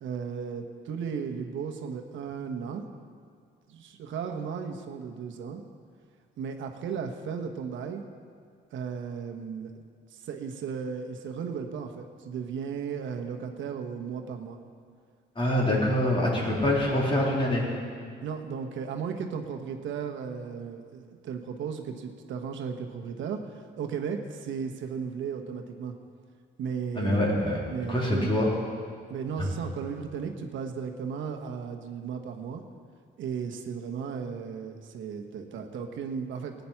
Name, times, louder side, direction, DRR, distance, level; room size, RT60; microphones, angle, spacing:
voice 1, 0.0-2.8 3.7-5.6 6.4-8.0 8.7-9.7 10.1-14.6 18.2-25.9 26.6-27.3 27.7-28.4 29.1-32.6 33.2-36.5, right 6 dB, 75° right, 4 dB, 1.2 m, -35 dB
voice 2, 15.4-17.7 27.0-27.6 27.9-28.5 29.4-29.5, left 1 dB, 25° left, -4 dB, 3.5 m, -25 dB
16.0 x 9.3 x 5.8 m, 2.1 s
cardioid pair, 90°, 20 cm